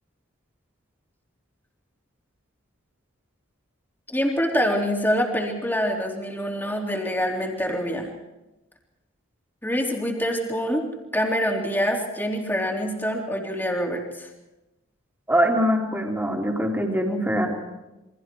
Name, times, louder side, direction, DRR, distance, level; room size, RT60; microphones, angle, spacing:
voice 1, 4.1-8.1 9.6-10.9 11.1-14.3, equal, 10° left, -1 dB, 3.5 m, -25 dB
voice 2, 15.3-17.5, equal, 10° right, -1 dB, 3.6 m, -23 dB
29.0 x 24.0 x 4.7 m, 1.0 s
head